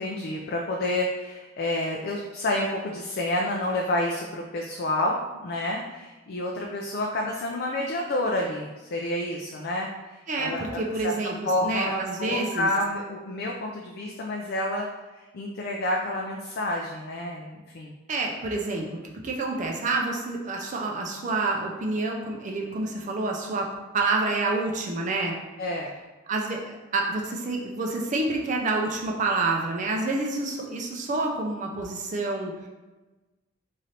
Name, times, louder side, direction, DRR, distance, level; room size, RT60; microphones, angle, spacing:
voice 1, 0.0-11.1 11.4-14.9 15.3-17.9 25.6-25.9, left 1 dB, 55° left, 0 dB, 0.4 m, -29 dB
voice 2, 10.3-12.7 18.1-23.7 23.9-25.3 26.3-32.5, right 3 dB, 40° right, 0 dB, 0.4 m, -28 dB
3.2 x 2.6 x 4.0 m, 1.2 s
head